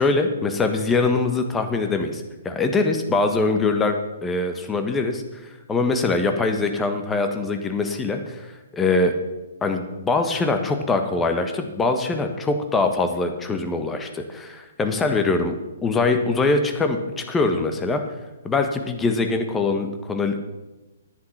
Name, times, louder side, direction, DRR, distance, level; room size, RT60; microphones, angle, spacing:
voice 1, 0.0-3.9 4.2-5.2 5.7-8.4 8.7-9.1 9.6-15.5 15.8-18.0 18.4-20.4, left 3 dB, 10° left, 5 dB, 1.4 m, -23 dB
10.5 x 10.5 x 5.9 m, 1.1 s
figure-of-eight pair, 120°, 0 cm